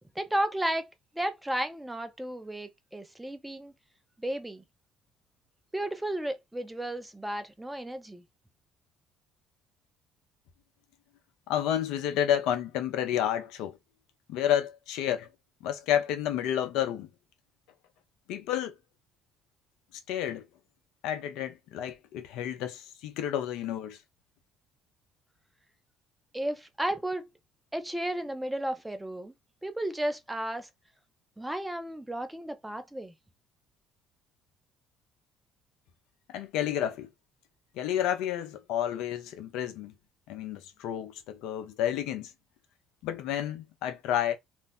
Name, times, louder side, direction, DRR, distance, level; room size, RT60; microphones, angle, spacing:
voice 1, 0.2-0.9 1.2-3.7 4.2-4.6 5.7-8.2 26.3-27.3 27.7-29.3 29.6-30.7 31.4-33.1, right 1 dB, 10° right, 0.7 m, -33 dB
voice 2, 11.5-13.8 14.3-15.3 15.6-17.1 18.3-18.7 19.9-20.4 21.0-24.0 36.3-37.1 37.7-39.9 40.3-42.3 43.0-44.4, left 10 dB, 75° left, 0.5 m, -30 dB
2.6 x 2.0 x 3.5 m
supercardioid pair, 70°, 0 cm